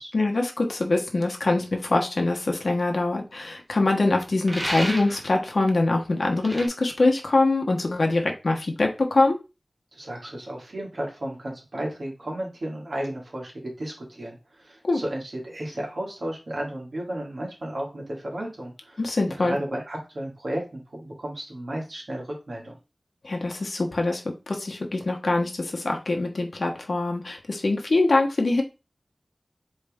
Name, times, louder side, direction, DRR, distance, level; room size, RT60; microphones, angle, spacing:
voice 1, 0.1-9.4 14.8-15.0 19.0-19.6 23.2-28.6, left 2 dB, 75° left, 1 dB, 1.0 m, -24 dB
sound 1, 4.5-5.3 6.4-6.7, right 1 dB, 30° right, 1.3 m, -31 dB
voice 2, 9.9-19.0 19.4-22.8, right 1 dB, 75° right, -2 dB, 2.1 m, -33 dB
4.4 x 3.3 x 3.5 m, 0.29 s
wide cardioid pair, 60°, 0 cm